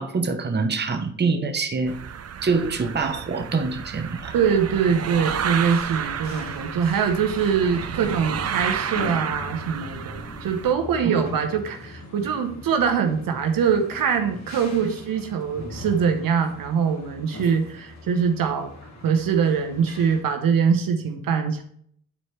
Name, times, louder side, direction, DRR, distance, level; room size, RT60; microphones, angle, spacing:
voice 1, 0.0-2.0 2.4-4.3 11.0-11.1 14.8-14.9, right 4 dB, 30° right, 6 dB, 0.9 m, -25 dB
sound 1, 1.9-10.7, right 8 dB, 45° right, 0.6 m, -31 dB
voice 2, 4.3-18.7 19.0-21.6, right 6 dB, 75° right, 6 dB, 1.0 m, -23 dB
sound 2, 5.2-20.2, left 2 dB, 50° left, 1.7 m, -41 dB
9.8 x 4.4 x 3.2 m, 0.63 s
cardioid pair, 60°, 34 cm